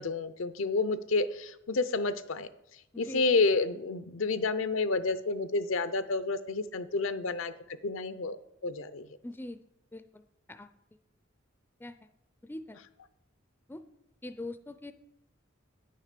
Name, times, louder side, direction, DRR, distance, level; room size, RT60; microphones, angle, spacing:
voice 1, 0.0-2.5 3.0-7.5 7.8-8.4 8.6-9.1, left 3 dB, 80° left, 13 dB, 0.6 m, -29 dB
voice 2, 9.2-9.6 9.9-10.2 10.5-10.7 11.8-12.0 12.4-12.8 13.7-13.8 14.2-14.9, left 2 dB, 10° left, 10 dB, 0.4 m, -42 dB
9.3 x 6.6 x 6.6 m, 0.87 s
head